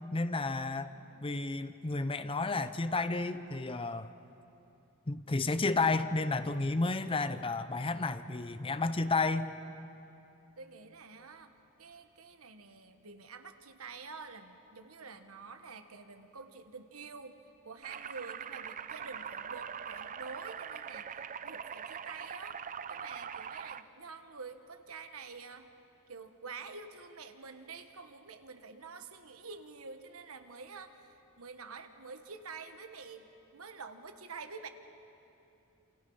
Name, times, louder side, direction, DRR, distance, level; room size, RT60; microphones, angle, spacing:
voice 1, 0.1-0.9 1.2-4.1 5.1-9.5, left 3 dB, 25° left, 12 dB, 0.7 m, -31 dB
voice 2, 0.8-1.2 10.6-11.5 11.8-17.4 17.6-21.1 21.4-22.6 22.9-25.7 26.1-33.3 33.5-34.7, right 4 dB, 70° right, 8 dB, 1.4 m, -48 dB
sound 1, 17.8-23.8, right 7 dB, 35° right, 0.5 m, -42 dB
28.5 x 27.0 x 5.6 m, 2.8 s
head